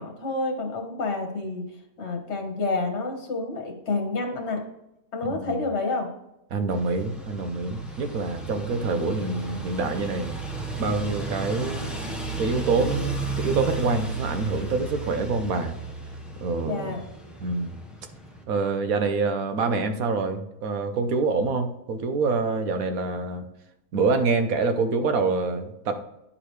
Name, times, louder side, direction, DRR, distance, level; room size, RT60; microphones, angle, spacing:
voice 1, 0.0-1.6 2.0-4.6 5.1-6.1 16.6-17.0, left 3 dB, 50° left, 2 dB, 1.6 m, -29 dB
voice 2, 5.3-5.6 6.5-10.4 10.8-12.1 12.4-15.7 16.4-16.9 17.4-17.8 18.5-23.4 23.9-26.0, right 4 dB, 70° right, 7 dB, 1.2 m, -26 dB
sound 1, 6.7-18.4, right 3 dB, ahead, 0.8 m, -34 dB
9.9 x 5.0 x 3.2 m, 0.87 s
omnidirectional pair, 1.6 m